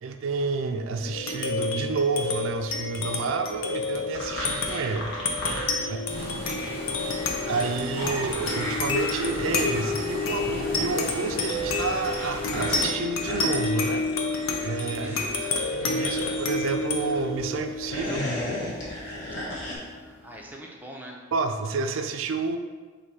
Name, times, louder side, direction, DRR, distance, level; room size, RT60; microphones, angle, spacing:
voice 1, 0.0-5.1 5.9-6.0 7.5-14.1 14.6-15.2 15.7-18.2 21.3-22.6, right 4 dB, 75° right, 7 dB, 0.4 m, -29 dB
sound 1, 1.0-19.9, left 3 dB, 85° left, 0.6 m, -30 dB
sound 2, 4.1-6.3 6.6-17.2 17.7-19.8, left 1 dB, 60° left, 1.1 m, -36 dB
voice 2, 5.8-6.1 6.4-6.8 15.0-15.3 19.4-21.2, right 1 dB, 10° right, -1 dB, 0.5 m, -43 dB
sound 3, 6.1-12.9, left 1 dB, 30° left, 1.2 m, -38 dB
4.7 x 2.6 x 4.1 m, 1.4 s
head